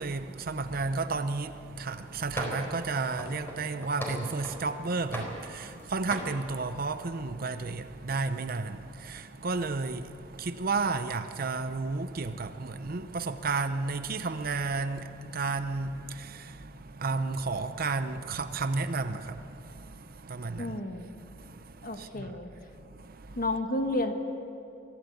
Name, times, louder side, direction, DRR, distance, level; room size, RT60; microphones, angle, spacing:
voice 1, 0.0-20.8 21.3-23.4, right 3 dB, 50° right, 0.8 m, -33 dB
sound 1, 2.4-2.8 3.2-4.7 5.1-5.8 6.1-6.4, equal, 15° left, 4.0 m, -38 dB
voice 2, 20.6-21.1 21.8-22.5 23.4-24.1, left 2 dB, 50° left, 1.7 m, -31 dB
23.0 x 15.5 x 8.5 m
head